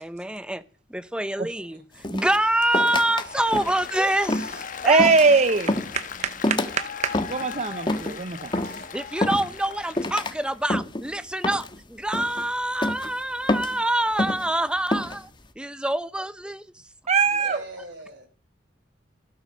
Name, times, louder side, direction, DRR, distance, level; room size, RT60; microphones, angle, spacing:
voice 1, 0.0-0.6 0.9-5.1 8.9-15.3 15.6-16.7, right 1 dB, 5° right, 0.8 m, -26 dB
sound 1, 2.0-3.3 3.5-3.9 4.3-4.6 5.0-5.4 5.7-6.0 6.4-6.8 7.1-7.5 7.9-8.2 8.5-8.8 9.2-9.7 10.0-10.3 10.7-11.1 11.4-11.8 12.1-12.4 12.8-13.1 13.5-13.8 14.2-14.5 14.9-15.2, left 1 dB, 25° left, 1.4 m, -27 dB
Applause, 3.1-10.6, left 6 dB, 45° left, 1.3 m, -38 dB
voice 2, 4.9-8.8 17.1-17.6, right 4 dB, 40° right, 0.8 m, -22 dB
voice 3, 17.4-18.3, right 1 dB, 80° right, 5.7 m, -40 dB
16.0 x 12.0 x 6.4 m
head